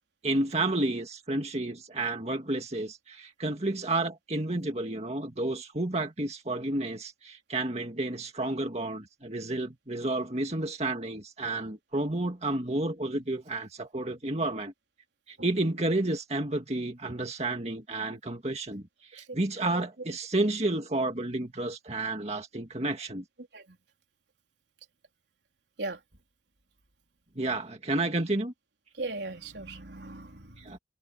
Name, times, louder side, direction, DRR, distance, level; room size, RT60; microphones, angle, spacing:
voice 1, 0.2-14.7 15.3-23.2 27.4-28.5 30.6-30.8, right 2 dB, 35° right, 2.0 m, -31 dB
voice 2, 29.0-30.8, right 2 dB, 75° right, 3.8 m, -38 dB
head